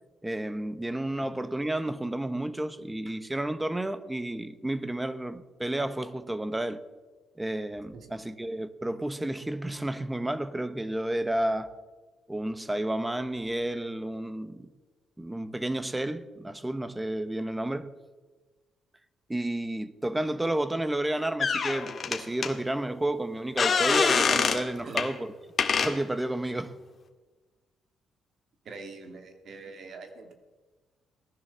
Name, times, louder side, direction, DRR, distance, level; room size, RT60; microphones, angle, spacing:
voice 1, 0.2-6.8 7.4-11.7 12.3-14.7 15.2-17.9 19.3-25.3 25.8-26.8, right 1 dB, 10° right, 1.1 m, -31 dB
sound 1, 21.4-22.5 23.6-24.6 25.0-25.1 25.6-25.9, left 5 dB, 45° left, 1.8 m, -25 dB
voice 2, 28.7-30.3, right 4 dB, 60° right, 2.1 m, -44 dB
18.0 x 11.0 x 6.9 m
cardioid pair, 90°, 0 cm